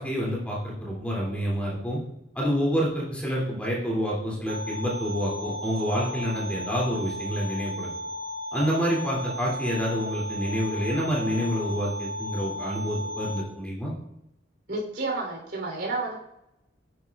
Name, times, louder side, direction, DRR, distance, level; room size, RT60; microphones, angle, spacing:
voice 1, 0.0-2.0 2.3-7.9 8.5-13.9, equal, 5° left, -4 dB, 2.7 m, -28 dB
sound 1, 4.5-13.4, left 1 dB, 80° right, 3.0 m, -35 dB
voice 2, 14.7-16.2, right 3 dB, 65° right, -1 dB, 3.5 m, -30 dB
9.7 x 9.5 x 2.4 m, 0.82 s
head